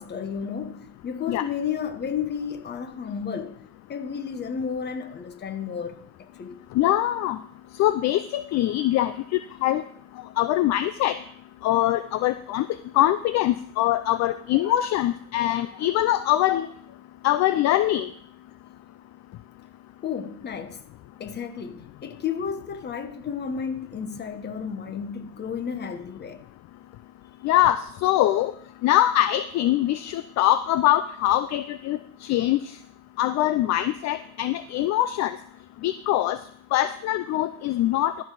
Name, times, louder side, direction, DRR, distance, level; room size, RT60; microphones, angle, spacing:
voice 1, 0.0-3.6 3.9-6.6 20.0-20.8 21.2-26.4, left 7 dB, 30° left, 1.1 m, -32 dB
voice 2, 6.8-7.4 7.8-9.8 10.4-11.2 11.6-12.7 13.0-16.7 17.2-18.1 27.4-28.5 28.8-32.0 32.3-32.6 33.2-35.4 35.8-36.4 36.7-38.1, left 13 dB, 50° left, 0.5 m, -23 dB
13.5 x 4.8 x 6.2 m
cardioid pair, 125°, 35 cm